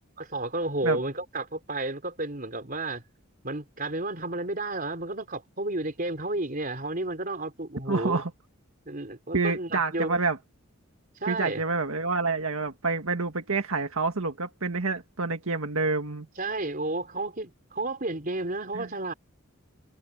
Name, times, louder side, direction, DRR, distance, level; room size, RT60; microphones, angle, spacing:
voice 1, 0.2-3.0 3.4-8.2 8.9-10.2 11.2-11.6 16.4-19.1, right 2 dB, 40° right, 4.1 m, -32 dB
voice 2, 7.9-8.3 9.3-10.4 11.3-16.3 18.7-18.9, right 3 dB, 85° right, 1.7 m, -28 dB
head